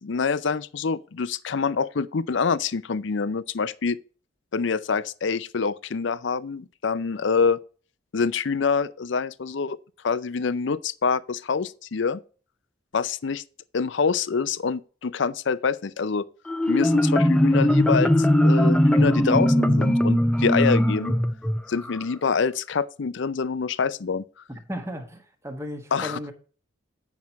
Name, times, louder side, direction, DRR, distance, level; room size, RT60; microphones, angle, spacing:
voice 1, 0.0-4.0 4.5-7.6 8.1-9.8 10.0-12.2 12.9-13.4 13.7-16.3 16.7-21.1 21.7-24.2 25.9-26.2, left 5 dB, 65° left, 0.5 m, -26 dB
Marimba xylophone, 16.5-22.0, left 1 dB, 5° left, 0.5 m, -20 dB
voice 2, 24.5-26.3, equal, 15° right, 1.4 m, -35 dB
9.5 x 6.0 x 4.1 m
head